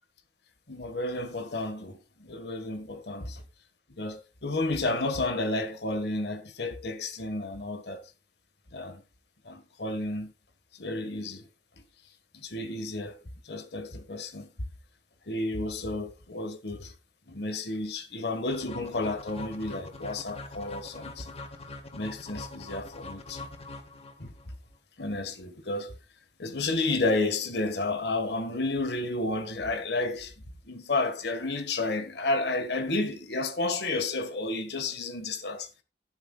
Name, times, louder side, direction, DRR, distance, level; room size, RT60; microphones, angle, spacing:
voice 1, 0.7-3.4 4.0-8.0 8.7-9.0 9.4-10.3 10.7-11.5 12.3-13.2 13.4-14.5 15.3-16.9 17.3-21.3 21.9-23.5 24.2-24.3 25.0-25.9 26.4-30.3 30.7-35.8, left 2 dB, 65° left, 1.6 m, -31 dB
sound 1, 18.5-24.5, left 2 dB, 35° left, 1.7 m, -43 dB
12.0 x 11.5 x 2.4 m
head